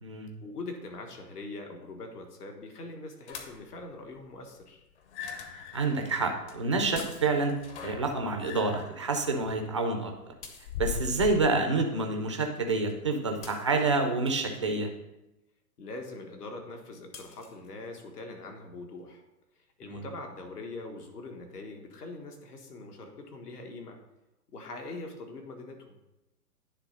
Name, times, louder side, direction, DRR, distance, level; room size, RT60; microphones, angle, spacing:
voice 1, 0.4-4.8 15.8-19.2 19.8-24.0 24.5-26.0, left 2 dB, 75° left, 3 dB, 1.6 m, -42 dB
sound 1, 3.3-3.8 5.0-11.6, left 8 dB, 45° left, 1.0 m, -41 dB
voice 2, 5.7-7.5 7.8-10.1 10.8-14.9 19.8-20.1, right 3 dB, 20° right, 4 dB, 0.3 m, -28 dB
sound 2, 6.1-6.2 6.5-6.6 6.9-7.7 10.4-10.8 12.4-12.5 12.9-13.0 13.4-14.6 17.1-17.7, left 5 dB, 25° left, 0.6 m, -48 dB
9.9 x 3.5 x 5.3 m, 0.96 s
hypercardioid pair, 130°, 47 cm